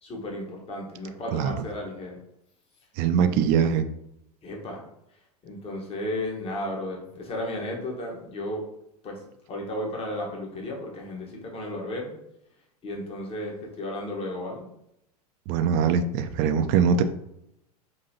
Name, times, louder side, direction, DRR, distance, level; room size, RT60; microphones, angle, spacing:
voice 1, 0.0-2.2 4.4-4.9 5.4-8.6 9.0-9.2 9.5-12.2 12.8-14.7, left 1 dB, 30° left, 0 dB, 1.2 m, -34 dB
voice 2, 3.0-3.8 15.5-17.0, right 7 dB, 45° right, 8 dB, 0.4 m, -22 dB
5.3 x 2.7 x 2.8 m, 0.80 s
hypercardioid pair, 95°, 21 cm